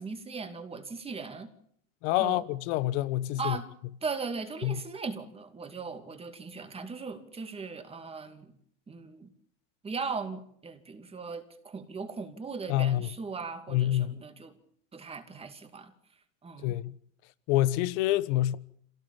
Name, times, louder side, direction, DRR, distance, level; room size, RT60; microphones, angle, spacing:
voice 1, 0.0-1.5 2.2-2.4 3.4-3.7 4.0-8.5 8.9-9.3 9.8-14.5 14.9-15.9 16.4-16.8, right 4 dB, 15° right, 2.5 m, -38 dB
voice 2, 2.0-3.6 4.6-4.8 12.7-13.1 13.7-14.2 16.6-16.9 17.5-18.6, left 14 dB, 55° left, 1.3 m, -27 dB
26.5 x 17.5 x 7.3 m
supercardioid pair, 135°, 40 cm